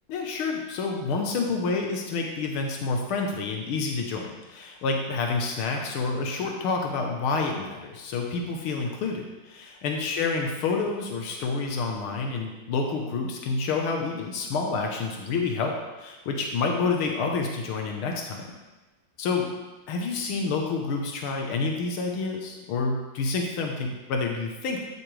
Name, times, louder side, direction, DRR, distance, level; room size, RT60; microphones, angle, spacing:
voice 1, 0.1-18.5 19.2-19.5 19.9-24.8, left 4 dB, 90° left, 1 dB, 1.9 m, -28 dB
13.0 x 7.6 x 3.3 m, 1.2 s
omnidirectional pair, 2.3 m